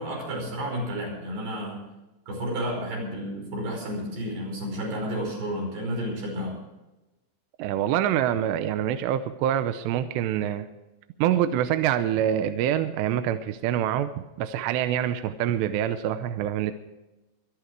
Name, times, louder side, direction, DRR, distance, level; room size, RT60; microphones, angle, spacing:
voice 1, 0.0-1.8 2.3-6.5, equal, 55° right, -1 dB, 7.3 m, -31 dB
voice 2, 7.6-10.7 11.2-14.1 14.4-16.7, right 10 dB, 80° right, 11 dB, 2.6 m, -25 dB
24.0 x 10.5 x 4.7 m, 1.0 s
omnidirectional pair, 5.5 m